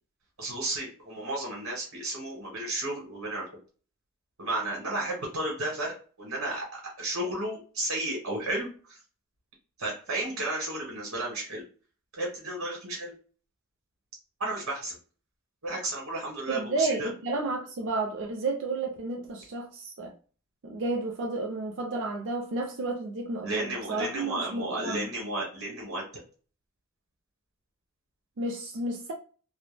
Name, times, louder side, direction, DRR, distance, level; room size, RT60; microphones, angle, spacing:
voice 1, 0.4-3.5 4.4-9.0 9.8-11.6 12.2-13.1 14.4-15.0 15.6-17.1 23.4-26.0, right 1 dB, 75° right, 1.0 m, -33 dB
voice 2, 16.5-20.1 20.6-25.1 28.4-29.1, right 2 dB, 60° right, 0.4 m, -32 dB
2.1 x 2.0 x 3.2 m
head